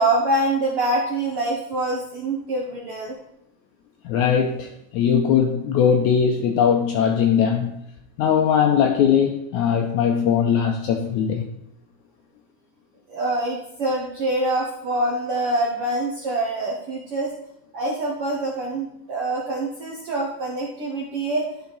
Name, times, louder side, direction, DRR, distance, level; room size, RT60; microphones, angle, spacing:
voice 1, 0.0-3.1 13.1-17.3 17.7-21.4, right 2 dB, 80° right, -3 dB, 1.2 m, -25 dB
voice 2, 4.0-7.8 8.2-11.5, left 7 dB, 90° left, 3 dB, 1.7 m, -20 dB
11.5 x 4.8 x 4.0 m, 0.77 s
omnidirectional pair, 4.1 m